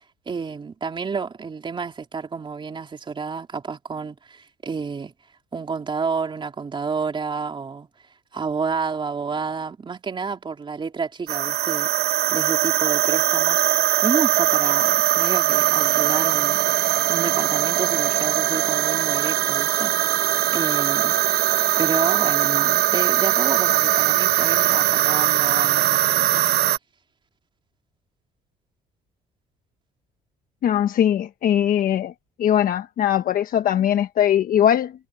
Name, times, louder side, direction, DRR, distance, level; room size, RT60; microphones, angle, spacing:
voice 1, 0.3-5.1 5.5-7.9 8.3-11.9 12.3-13.6 14.0-16.6 17.1-21.2 21.8-26.5, right 5 dB, 30° right, 3.5 m, -30 dB
sound 1, 11.3-26.8, right 14 dB, 70° right, 0.8 m, -20 dB
voice 2, 30.6-32.1 32.4-34.9, left 10 dB, 55° left, 1.2 m, -20 dB
cardioid pair, 110°, 17 cm